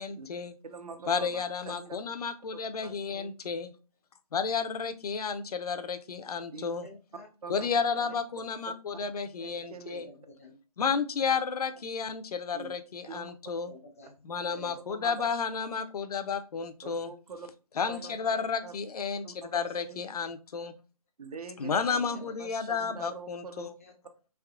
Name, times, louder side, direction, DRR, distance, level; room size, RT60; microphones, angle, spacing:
voice 1, 0.0-0.5 1.1-3.7 4.3-6.9 7.5-10.1 10.8-13.7 14.2-17.1 17.8-20.7 21.6-23.7, left 5 dB, 75° left, 10 dB, 0.5 m, -32 dB
voice 2, 0.6-2.0 2.8-3.3 6.5-6.7 7.4-7.7 9.4-10.0 12.5-12.7 13.0-13.3 14.9-15.3 16.8-17.5 17.9-18.2 18.6-18.7 19.2-20.1 21.2-21.7 22.4-23.7, right 5 dB, 75° right, 8 dB, 0.7 m, -44 dB
voice 3, 6.8-7.3 7.5-8.0 9.9-10.5 13.7-14.1 14.4-14.8 17.8-18.4 21.8-22.3 23.8-23.9, left 2 dB, 25° left, 3 dB, 0.3 m, -49 dB
3.5 x 2.8 x 2.3 m, 0.33 s
hypercardioid pair, 150°, 20 cm